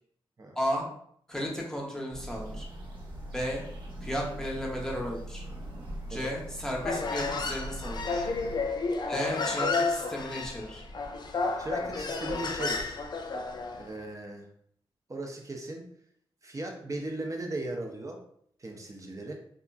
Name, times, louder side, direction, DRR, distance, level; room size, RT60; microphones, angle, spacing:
voice 1, 0.5-0.9 1.3-2.7 3.3-3.6 4.0-5.4 6.1-8.3 9.1-10.8, equal, 5° left, -2 dB, 0.8 m, -34 dB
sound 1, 2.1-8.6, right 1 dB, 55° right, 1.0 m, -41 dB
Human voice, 6.8-13.9, left 3 dB, 45° left, 0.4 m, -31 dB
voice 2, 11.6-13.0 13.8-14.5 15.1-15.8 16.4-18.2 18.6-19.3, right 2 dB, 35° right, 1 dB, 0.6 m, -37 dB
2.8 x 2.4 x 2.3 m, 0.66 s
cardioid pair, 70°, 10 cm